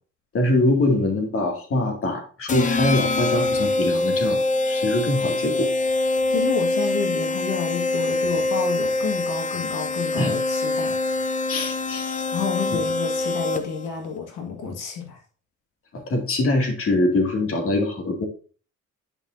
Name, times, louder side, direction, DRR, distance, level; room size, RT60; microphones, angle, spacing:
voice 1, 0.3-5.7 10.2-10.3 11.5-12.3 12.7-12.8 15.9-18.3, left 2 dB, 45° left, 2 dB, 2.4 m, -23 dB
sound 1, 2.5-13.9, left 2 dB, 25° left, 0.8 m, -24 dB
voice 2, 6.3-11.0 12.3-15.2, left 5 dB, 80° left, 2 dB, 1.9 m, -29 dB
10.5 x 5.7 x 2.7 m, 0.38 s
cardioid pair, 165°, 31 cm